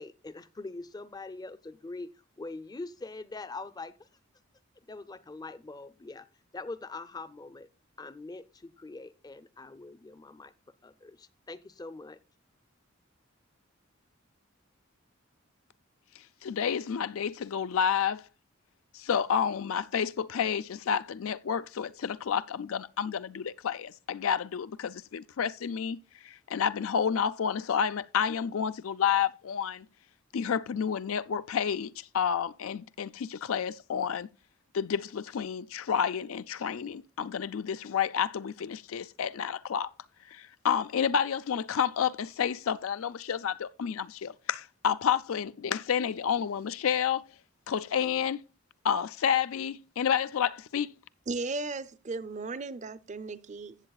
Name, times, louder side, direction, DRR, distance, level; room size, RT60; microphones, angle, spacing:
voice 1, 0.0-2.1 2.4-4.1 4.9-6.3 6.5-7.7 8.0-10.5 10.8-12.2, left 3 dB, 20° left, 0.5 m, -43 dB
voice 2, 16.4-18.2 18.9-29.9 30.3-34.3 34.7-39.9 40.3-47.2 47.7-48.4 48.8-50.9, left 7 dB, 80° left, 0.4 m, -30 dB
voice 3, 51.3-53.8, right 3 dB, 35° right, 0.5 m, -36 dB
15.5 x 7.4 x 2.3 m
head